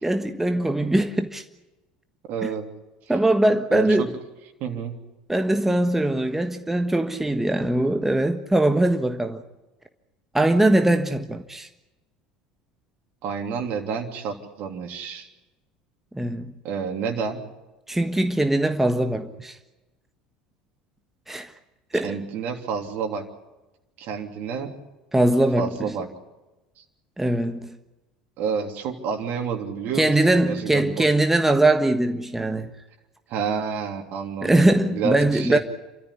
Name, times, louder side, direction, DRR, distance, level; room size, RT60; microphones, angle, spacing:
voice 1, 0.0-1.4 2.4-2.5 3.1-4.1 5.3-9.4 10.3-11.7 16.1-16.5 17.9-19.6 21.3-21.5 21.9-22.2 25.1-25.9 27.2-27.7 29.9-32.7 34.4-35.6, right 1 dB, 5° right, 1.4 m, -21 dB
voice 2, 2.3-2.7 3.7-4.1 4.6-5.0 13.2-15.3 16.6-17.4 22.0-23.2 24.0-24.8 25.6-26.1 28.4-31.1 33.3-34.7 34.9-35.6, right 6 dB, 55° right, 3.1 m, -29 dB
28.5 x 14.0 x 9.9 m
hypercardioid pair, 70°, 4 cm